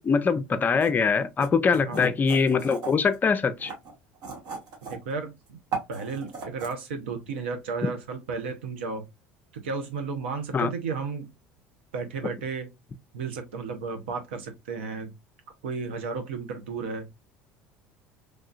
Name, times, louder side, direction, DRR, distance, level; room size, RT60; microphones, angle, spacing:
voice 1, 0.0-3.7 10.5-10.7, left 5 dB, 30° left, 0.5 m, -23 dB
sound 1, 0.8-0.9 1.4-3.2 3.6-5.1 5.5-6.7, right 4 dB, 65° right, 1.5 m, -36 dB
voice 2, 1.7-2.1 4.9-5.6 5.9-9.0 9.5-11.3 11.9-12.7 13.1-15.1 15.6-17.0, right 4 dB, 85° right, 0.8 m, -33 dB
3.3 x 2.7 x 2.4 m
hypercardioid pair, 75°, 6 cm